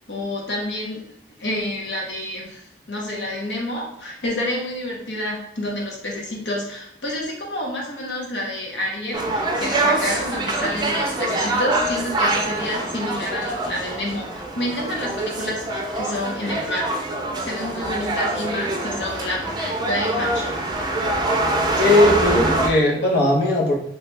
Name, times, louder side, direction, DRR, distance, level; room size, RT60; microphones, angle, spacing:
voice 1, 0.1-1.0 1.4-17.0 17.4-20.7, left 1 dB, 85° left, -1 dB, 1.1 m, -29 dB
sound 1, 9.1-22.7, right 2 dB, 25° right, 0.5 m, -24 dB
voice 2, 21.8-23.7, left 2 dB, 65° left, -2 dB, 0.9 m, -18 dB
3.2 x 3.2 x 3.2 m, 0.71 s
head